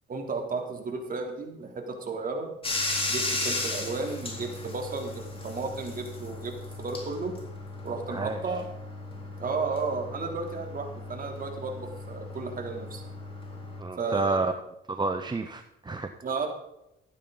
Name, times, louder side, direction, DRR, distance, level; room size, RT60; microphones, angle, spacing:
voice 1, 0.1-2.5 3.1-7.3 7.8-8.7 9.4-13.0 14.0-14.4 16.2-16.5, right 4 dB, 45° right, 2 dB, 3.3 m, -33 dB
Bathtub (filling or washing), 2.6-13.8, left 2 dB, 25° left, 3.9 m, -36 dB
voice 2, 8.1-8.4 13.8-14.5 14.9-16.1, right 3 dB, 20° right, 7 dB, 0.9 m, -30 dB
14.0 x 11.0 x 4.0 m, 0.84 s
cardioid pair, 90°, 20 cm